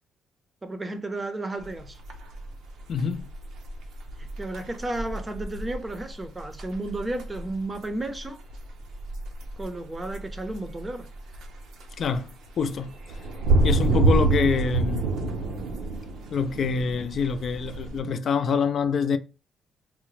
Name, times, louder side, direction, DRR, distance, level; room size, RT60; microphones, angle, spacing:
voice 1, 0.6-2.0 4.2-8.4 9.6-11.1, right 2 dB, 20° right, 0.6 m, -33 dB
sound 1, 1.6-18.0, right 3 dB, 80° right, 0.7 m, -28 dB
voice 2, 2.9-3.3 12.0-12.9 13.6-15.1 16.3-19.2, left 5 dB, 55° left, 0.4 m, -26 dB
3.8 x 2.0 x 3.1 m
cardioid pair, 90°, 0 cm